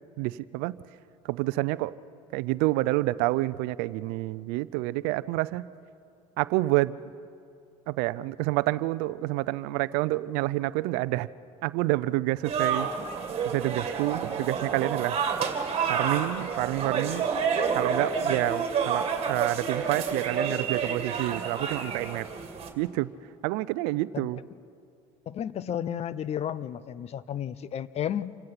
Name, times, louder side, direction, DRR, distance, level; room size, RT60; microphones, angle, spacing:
voice 1, 0.2-0.7 1.2-2.0 2.3-5.6 6.4-7.0 7.9-11.3 11.6-12.9 13.4-15.2 15.9-17.3 17.7-22.3 22.8-23.1 23.4-24.4, right 19 dB, 70° right, 0.5 m, -28 dB
sound 1, 12.4-22.7, right 6 dB, 40° right, 2.5 m, -29 dB
voice 2, 25.3-28.4, left 9 dB, 40° left, 0.7 m, -32 dB
27.5 x 16.5 x 5.9 m
supercardioid pair, 90°, 16 cm